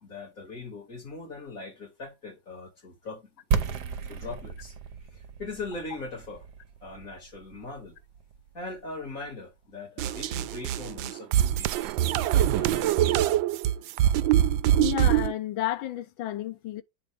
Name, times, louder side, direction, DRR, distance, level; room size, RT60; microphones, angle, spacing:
voice 1, 0.1-3.3 4.0-4.7 5.1-6.4 6.8-8.0 8.5-13.2, left 3 dB, 45° left, 3.7 m, -40 dB
sound 1, 3.5-9.2, right 6 dB, 60° right, 1.4 m, -34 dB
sound 2, 10.0-15.3, right 12 dB, 80° right, 1.3 m, -24 dB
voice 2, 14.8-16.8, left 14 dB, 80° left, 1.6 m, -31 dB
9.8 x 3.9 x 3.5 m
omnidirectional pair, 2.1 m